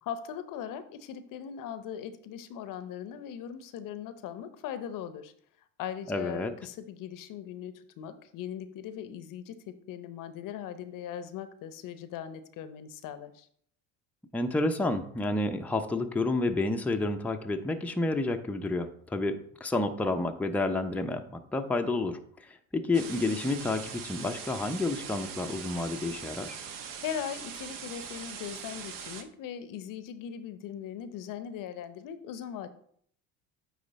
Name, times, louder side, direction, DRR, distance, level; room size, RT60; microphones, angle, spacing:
voice 1, 0.0-5.3 5.8-13.5 27.0-32.7, left 9 dB, 55° left, 11 dB, 0.8 m, -39 dB
voice 2, 6.1-6.5 14.3-26.6, left 2 dB, 5° left, 4 dB, 0.6 m, -30 dB
sound 1, 22.9-29.2, right 7 dB, 55° right, 1.0 m, -41 dB
9.2 x 3.1 x 4.1 m, 0.63 s
hypercardioid pair, 70°, 39 cm